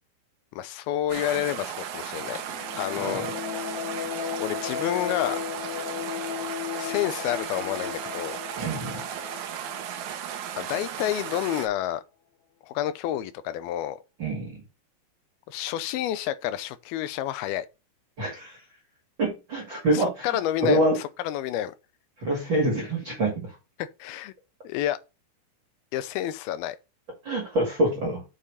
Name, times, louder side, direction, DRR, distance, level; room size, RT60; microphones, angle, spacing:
voice 1, 0.5-2.4 2.8-3.2 4.4-5.4 6.8-8.4 10.6-12.0 12.6-14.0 15.5-17.7 19.9-21.7 23.8-24.3 24.6-25.0 25.9-26.8, left 12 dB, 90° left, 2.6 m, -29 dB
sound 1, 1.1-11.7, right 9 dB, 70° right, 1.9 m, -36 dB
sound 2, 2.4-10.9, left 9 dB, 70° left, 1.8 m, -36 dB
voice 2, 8.6-9.0 14.2-14.6 18.2-18.6 19.2-20.4 20.6-21.0 22.2-23.6 27.2-28.2, right 1 dB, 35° right, 2.4 m, -26 dB
6.6 x 5.7 x 5.0 m
omnidirectional pair, 4.3 m